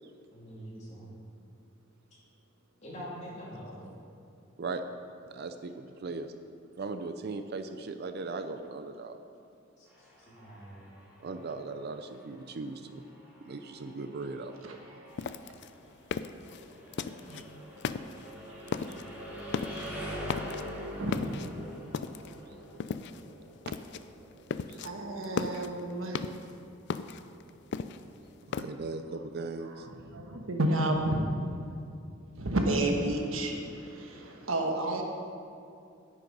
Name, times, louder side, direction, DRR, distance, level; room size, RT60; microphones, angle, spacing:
voice 1, 0.3-1.1 2.8-3.8 9.8-10.8, equal, 35° left, -7 dB, 3.1 m, -45 dB
voice 2, 5.3-6.3 6.8-9.2 11.2-13.0 13.5-14.8 24.7-24.8 28.5-29.9, right 3 dB, 55° right, 8 dB, 0.5 m, -38 dB
sound 1, 9.9-25.7, equal, 10° right, 3.1 m, -45 dB
sound 2, 15.2-17.4 17.8-18.4 18.7-19.1 19.4-19.9 20.2-20.8 21.1-22.4 22.8-23.3 23.7-24.0 24.3-24.9 25.2-26.5 26.9-28.6, left 5 dB, 60° left, 0.4 m, -36 dB
voice 3, 18.5-19.0 19.7-19.9 20.9-21.1 24.8-26.3 29.6-31.3 32.3-35.0, right 1 dB, 90° right, 2 dB, 1.3 m, -31 dB
9.5 x 9.2 x 5.3 m, 2.5 s
head